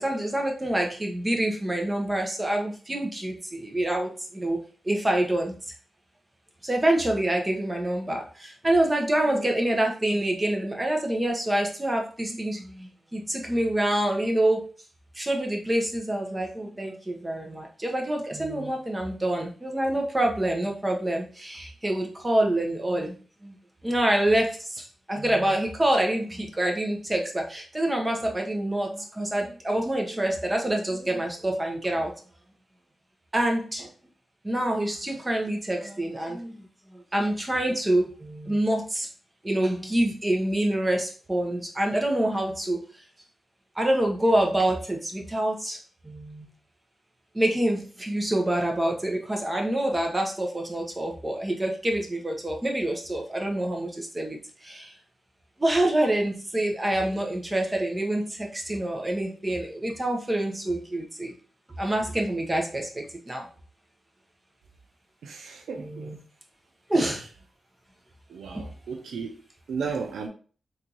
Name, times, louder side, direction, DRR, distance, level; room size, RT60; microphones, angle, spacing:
voice 1, 0.0-4.6 4.8-5.5 6.6-14.7 15.1-23.2 23.4-23.5 23.8-32.1 33.3-33.9 34.4-39.1 39.4-42.8 43.7-45.8 46.0-46.5 47.3-54.9 55.6-61.3 61.8-63.5 65.8-66.2 66.9-67.2 68.5-68.7, right 1 dB, 25° right, 1.0 m, -26 dB
voice 2, 65.2-66.1 68.3-69.4 69.7-70.3, right 5 dB, 85° right, 0.4 m, -34 dB
3.5 x 2.6 x 3.0 m
supercardioid pair, 45°, 0 cm